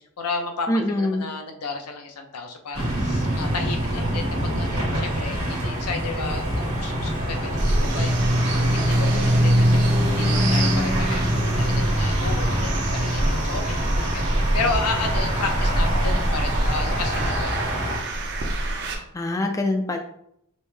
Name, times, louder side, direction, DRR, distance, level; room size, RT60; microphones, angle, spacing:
voice 1, 0.0-8.1 8.5-17.6, left 4 dB, 85° left, 4 dB, 0.7 m, -32 dB
voice 2, 0.7-1.3 19.1-20.0, left 1 dB, 15° left, 4 dB, 0.3 m, -24 dB
sound 1, 2.7-18.0, equal, 70° right, 1.5 m, -23 dB
sound 2, 7.6-18.9, right 1 dB, 50° right, 0.7 m, -28 dB
5.2 x 2.1 x 3.2 m, 0.72 s
head